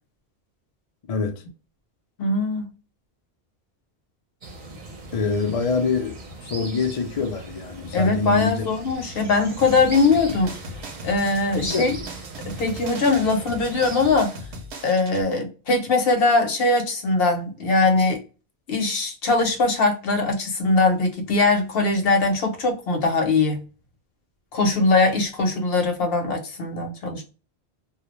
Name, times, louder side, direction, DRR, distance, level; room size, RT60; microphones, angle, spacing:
voice 1, 1.1-1.4 5.1-8.7 11.7-11.9, left 4 dB, 50° left, 0.4 m, -25 dB
voice 2, 2.2-2.7 7.9-10.5 11.0-12.0 12.5-14.4 14.8-18.2 18.7-23.6 24.5-27.2, left 3 dB, 70° left, 0.8 m, -21 dB
sound 1, 4.4-14.2, right 2 dB, 50° right, 0.7 m, -39 dB
sound 2, 9.6-15.2, right 1 dB, 85° right, 0.9 m, -38 dB
2.3 x 2.1 x 2.9 m
omnidirectional pair, 1.1 m